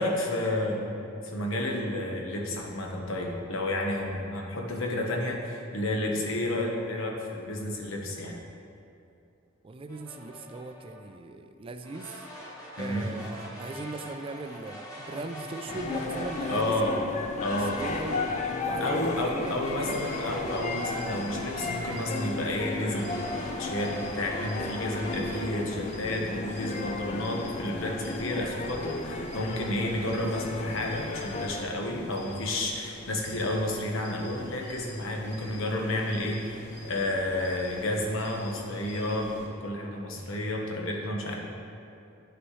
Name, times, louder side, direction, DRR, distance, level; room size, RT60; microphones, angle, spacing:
voice 1, 0.0-8.4 12.8-13.1 16.5-17.0 17.4-17.8 18.8-23.1 23.6-36.6 36.8-41.4, left 1 dB, 85° left, 0 dB, 1.1 m, -31 dB
voice 2, 9.6-12.2 12.8-16.7 17.2-20.0, right 2 dB, 25° right, 8 dB, 0.3 m, -39 dB
sound 1, 9.9-11.1 11.8-16.9 17.4-22.4 22.9-25.6, equal, 15° left, 1.3 m, -43 dB
sound 2, 15.7-31.6, left 3 dB, 35° left, 0.4 m, -34 dB
sound 3, 19.8-39.5, left 1 dB, 60° left, 1.6 m, -47 dB
9.8 x 6.1 x 3.2 m, 2.6 s
head